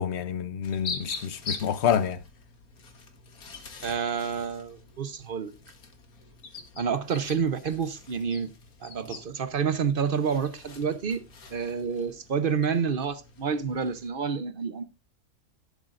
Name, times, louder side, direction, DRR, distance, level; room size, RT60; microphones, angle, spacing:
voice 1, 0.0-2.2, left 8 dB, 55° left, 0.9 m, -27 dB
sound 1, 0.6-14.1, left 4 dB, 80° left, 2.1 m, -44 dB
voice 2, 3.8-5.5 6.8-8.5 8.8-11.2 11.5-14.8, right 6 dB, 45° right, 0.8 m, -29 dB
12.0 x 11.5 x 2.5 m
omnidirectional pair, 1.5 m